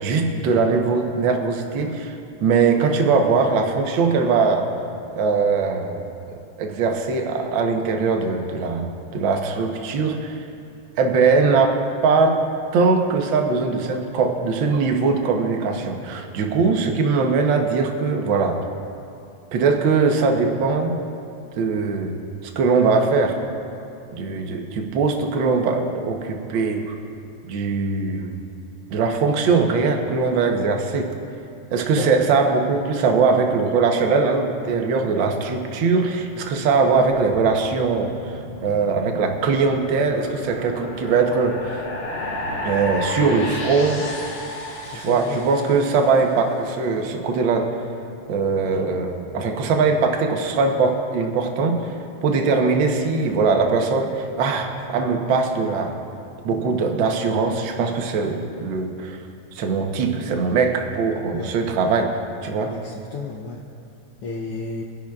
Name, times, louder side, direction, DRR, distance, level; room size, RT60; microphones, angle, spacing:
voice 1, 0.0-2.1 2.4-4.7 5.1-6.0 6.6-10.4 11.0-12.4 12.7-18.6 19.5-21.0 21.6-22.2 22.4-23.4 24.1-26.9 27.4-28.4 28.9-31.2 31.7-41.6 42.6-44.1 44.9-47.7 48.3-51.8 52.2-55.9 56.4-59.2 59.5-62.1 62.4-62.7, right 4 dB, 65° right, 2 dB, 1.2 m, -21 dB
voice 2, 32.0-32.4 44.8-45.5 61.3-61.5 62.7-63.6 64.2-64.8, left 3 dB, 85° left, 0 dB, 1.2 m, -32 dB
sound 1, 37.1-46.5, left 1 dB, 50° left, 2.0 m, -33 dB
25.5 x 11.0 x 2.4 m, 2.6 s
omnidirectional pair, 3.4 m